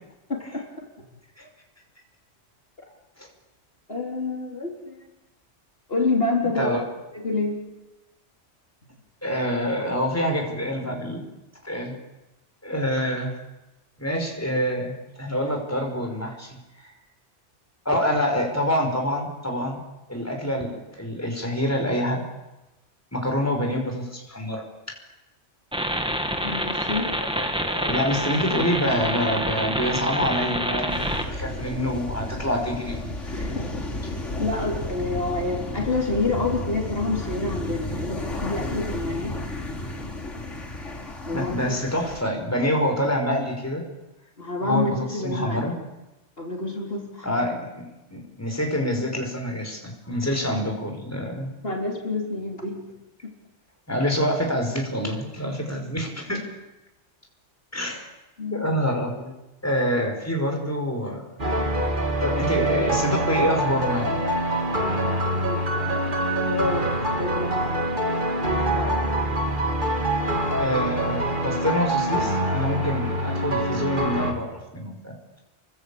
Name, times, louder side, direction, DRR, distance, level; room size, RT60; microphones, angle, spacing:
voice 1, 0.3-0.6 3.9-5.0 5.9-6.7 7.1-7.6 26.4-27.1 33.3-33.7 34.0-39.4 41.3-41.8 44.4-45.7 46.4-47.5 51.6-52.9 53.2-53.3 58.4-58.6 64.8-66.0 66.5-67.9 68.4-69.3, left 3 dB, 50° left, 0 dB, 4.0 m, -28 dB
voice 2, 9.2-11.3 11.6-12.0 12.6-13.3 14.0-16.6 16.8-16.9 17.9-19.8 20.1-22.2 23.1-24.6 27.2-33.0 33.3-33.5 34.0-34.1 41.3-43.8 44.6-45.7 47.2-51.5 53.9-56.5 57.7-58.1 58.5-59.3 59.6-61.2 62.2-64.2 70.6-75.1, equal, 10° left, 2 dB, 5.4 m, -26 dB
sound 1, 25.7-31.2, equal, 5° right, 2.3 m, -27 dB
sound 2, 30.9-42.2, left 1 dB, 75° left, 5.1 m, -32 dB
sound 3, 61.4-74.3, right 1 dB, 45° right, 3.3 m, -25 dB
28.5 x 23.5 x 8.7 m, 1.0 s
omnidirectional pair, 1.2 m